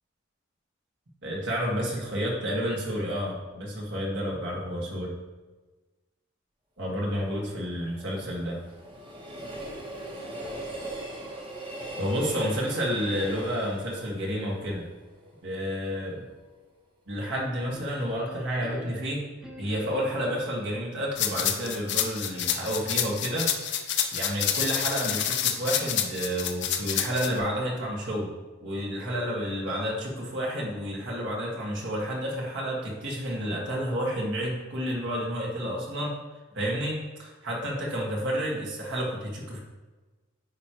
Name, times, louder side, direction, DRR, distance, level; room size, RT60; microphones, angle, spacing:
voice 1, 1.2-5.1 6.8-8.6 12.0-14.8 15.4-16.2 17.1-19.2 19.6-23.5 24.1-28.3 28.6-36.2 36.5-39.6, equal, 60° right, -3 dB, 1.8 m, -30 dB
Train, 6.9-16.0 16.4-16.5, right 1 dB, 25° right, 1.1 m, -40 dB
sound 1, 17.7-20.5 21.4-23.3, left 1 dB, 5° right, 0.8 m, -47 dB
sound 2, 21.2-27.3, left 10 dB, 55° left, 0.6 m, -27 dB
9.4 x 5.0 x 3.0 m, 1.2 s
head